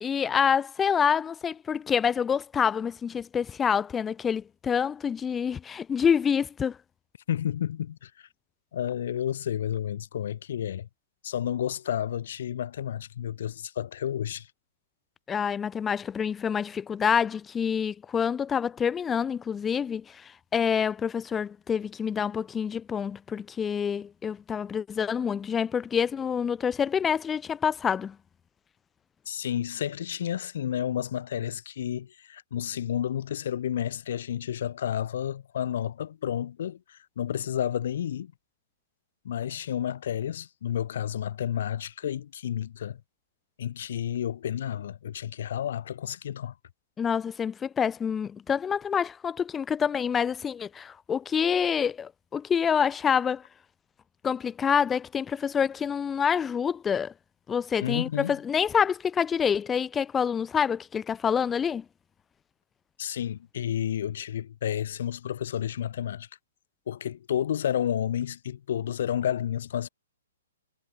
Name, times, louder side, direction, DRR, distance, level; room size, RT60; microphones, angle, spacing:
voice 1, 0.0-6.8 15.3-28.2 47.0-53.4 54.2-57.1 57.5-61.8, left 7 dB, 10° left, 0.5 m, -27 dB
voice 2, 7.3-8.3 8.7-10.9 11.2-14.5 29.3-38.3 39.2-43.0 43.6-46.5 57.8-58.4 63.0-66.3 66.9-69.9, left 10 dB, 55° left, 5.2 m, -31 dB
hypercardioid pair, 160°, 0 cm